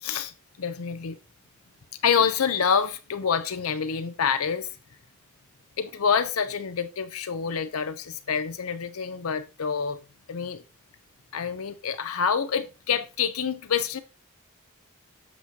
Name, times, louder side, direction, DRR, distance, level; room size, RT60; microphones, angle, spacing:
voice 1, 0.0-1.2 2.0-4.7 5.8-10.0 10.3-10.6 11.3-14.0, left 6 dB, 85° left, 0.6 m, -27 dB
8.0 x 6.0 x 2.8 m
head